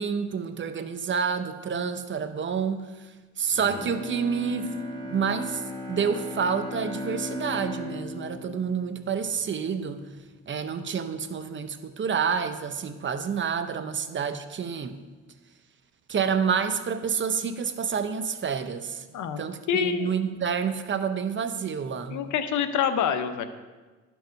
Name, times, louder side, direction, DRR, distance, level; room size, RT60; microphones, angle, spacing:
voice 1, 0.0-4.7 5.1-5.6 5.9-10.0 10.5-15.0 16.1-19.0 19.4-22.2, right 6 dB, 40° right, 10 dB, 0.7 m, -28 dB
Bowed string instrument, 3.5-9.7 10.1-10.2, left 1 dB, 15° left, 2.3 m, -37 dB
voice 2, 19.7-20.1 22.1-23.4, left 8 dB, 75° left, 10 dB, 0.7 m, -26 dB
11.5 x 4.6 x 5.2 m, 1.3 s
cardioid pair, 90°, 30 cm